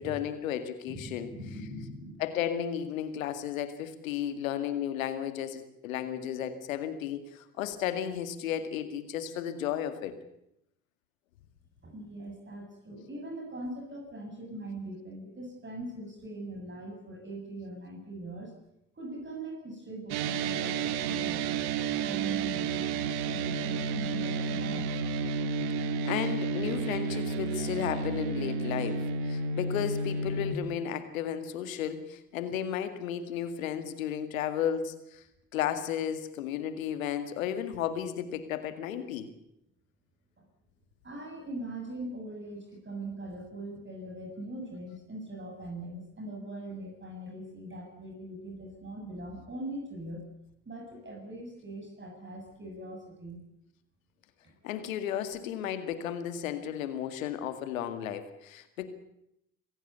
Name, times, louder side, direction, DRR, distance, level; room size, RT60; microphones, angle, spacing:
voice 1, 0.0-1.3 2.2-10.2 26.0-35.2 35.5-39.3 54.6-58.9, left 9 dB, 85° left, 10 dB, 2.2 m, -34 dB
voice 2, 0.9-2.2 11.8-18.5 19.0-21.6 21.9-24.9 40.4-40.5 41.0-50.3 50.7-53.4, right 1 dB, 30° right, 2 dB, 7.6 m, -41 dB
sound 1, 20.1-30.6, right 4 dB, 70° right, 1.9 m, -31 dB
26.5 x 16.5 x 8.2 m, 0.80 s
hypercardioid pair, 65°, 39 cm